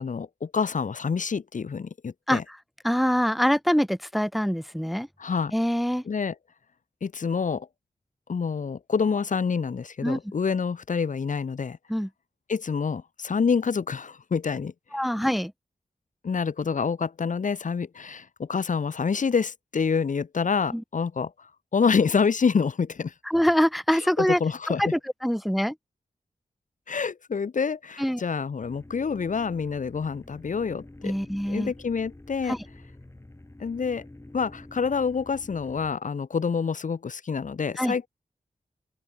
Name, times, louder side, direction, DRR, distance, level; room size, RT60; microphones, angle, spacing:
voice 1, 0.0-2.4 5.2-5.5 6.0-6.3 7.0-7.7 8.3-11.8 12.5-14.7 16.2-23.1 24.2-24.8 26.9-31.1 31.5-32.6 33.6-34.0 34.3-38.1, left 5 dB, 65° left, 1.6 m, -27 dB
voice 2, 2.8-5.1 5.5-6.0 10.0-10.2 11.9-12.1 14.9-15.5 20.7-20.8 23.3-24.4 24.8-25.7 28.0-28.2 31.0-31.7 32.5-32.6 37.8-37.9, equal, ahead, 0.9 m, -24 dB
sound 1, 28.6-35.9, left 1 dB, 20° left, 3.9 m, -48 dB
open air
wide cardioid pair, 95°, 14 cm